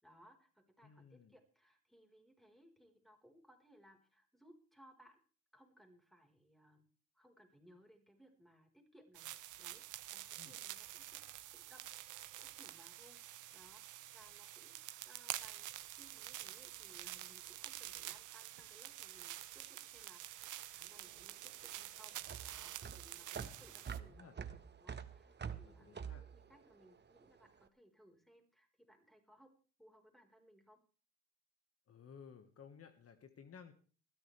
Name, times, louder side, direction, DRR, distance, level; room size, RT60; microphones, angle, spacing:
voice 1, 0.0-5.2 5.5-6.8 7.1-11.2 11.5-11.8 12.3-14.7 15.0-15.7 16.0-29.5 29.8-30.8, equal, ahead, 3 dB, 4.6 m, -65 dB
voice 2, 0.8-1.3 10.4-10.6 23.5-24.4 25.6-26.2 31.9-33.7, left 6 dB, 50° left, 7 dB, 1.7 m, -58 dB
sound 1, 9.1-24.0, right 14 dB, 85° right, 1.0 m, -48 dB
sound 2, 20.9-27.4, right 7 dB, 35° right, 1.4 m, -47 dB
20.0 x 13.5 x 3.4 m, 0.38 s
cardioid pair, 90°, 30 cm